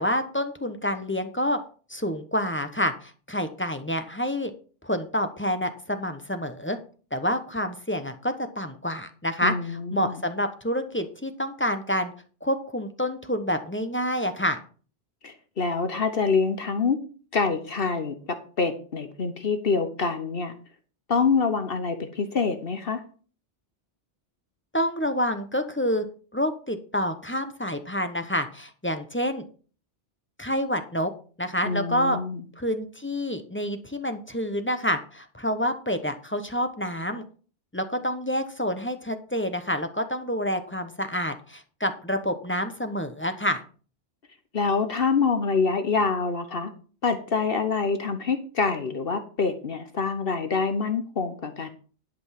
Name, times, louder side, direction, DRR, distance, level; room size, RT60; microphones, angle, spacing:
voice 1, 0.0-1.6 1.9-4.5 4.8-6.8 7.1-12.1 12.4-14.6 24.7-26.0 26.3-29.4 30.4-31.1 31.4-32.2 32.6-37.2 37.7-43.6, equal, 10° left, 7 dB, 0.9 m, -28 dB
voice 2, 9.4-10.2 15.2-17.0 17.3-18.2 18.6-20.5 21.1-23.0 31.6-32.4 44.5-46.7 47.0-51.7, left 5 dB, 55° left, 8 dB, 1.2 m, -26 dB
11.5 x 5.3 x 5.9 m, 0.40 s
omnidirectional pair, 1.2 m